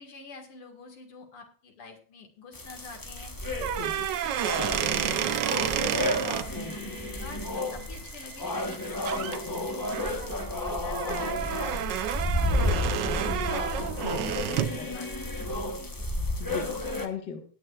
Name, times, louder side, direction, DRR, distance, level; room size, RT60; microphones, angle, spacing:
voice 1, 0.0-3.4 3.7-5.9 6.4-10.4 10.8-11.5 12.0-13.4 13.7-15.4 15.8-15.9, left 4 dB, 90° left, 3 dB, 2.9 m, -48 dB
sound 1, 2.5-17.1, left 1 dB, 15° left, 0.6 m, -32 dB
sound 2, 3.5-6.5 8.6-8.8 9.1-9.4 9.9-14.8, right 11 dB, 65° right, 1.2 m, -30 dB
Alarm, 4.1-10.1, right 4 dB, 85° right, 3.2 m, -52 dB
voice 2, 6.5-7.1 9.1-9.7 11.0-11.2 11.5-11.6 14.0-15.0 16.4-17.5, left 6 dB, 55° left, 4 dB, 2.2 m, -40 dB
18.5 x 9.0 x 2.4 m, 0.42 s
omnidirectional pair, 2.3 m